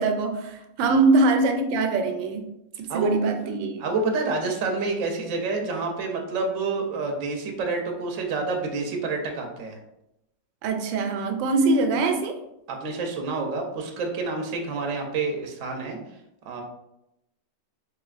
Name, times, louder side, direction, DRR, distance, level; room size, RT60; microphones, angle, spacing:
voice 1, 0.0-2.4 2.8-3.8 10.6-12.4, right 3 dB, 90° right, 5 dB, 1.3 m, -23 dB
voice 2, 3.8-9.8 12.7-16.0 16.5-16.6, right 3 dB, 65° right, 2 dB, 0.7 m, -28 dB
4.1 x 3.1 x 2.4 m, 0.85 s
omnidirectional pair, 2.0 m